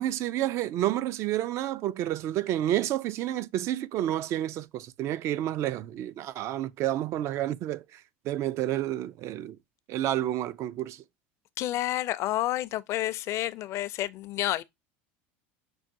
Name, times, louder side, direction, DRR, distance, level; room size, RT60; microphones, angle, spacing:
voice 1, 0.0-9.6 9.9-11.0, right 13 dB, 50° right, 0.4 m, -30 dB
voice 2, 11.6-14.6, left 15 dB, 50° left, 0.4 m, -29 dB
6.2 x 2.2 x 2.6 m
supercardioid pair, 105°, 6 cm